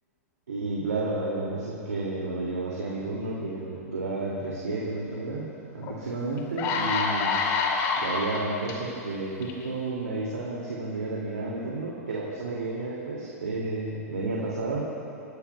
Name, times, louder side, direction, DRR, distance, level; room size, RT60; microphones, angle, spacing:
voice 1, 0.5-7.4 8.0-14.8, right 2 dB, 80° right, -5 dB, 2.5 m, -31 dB
sound 1, 5.8-5.9 6.4-8.7 9.4-9.6, left 5 dB, 40° left, 2.7 m, -27 dB
30.0 x 14.0 x 2.3 m, 3.0 s
hypercardioid pair, 110°, 9 cm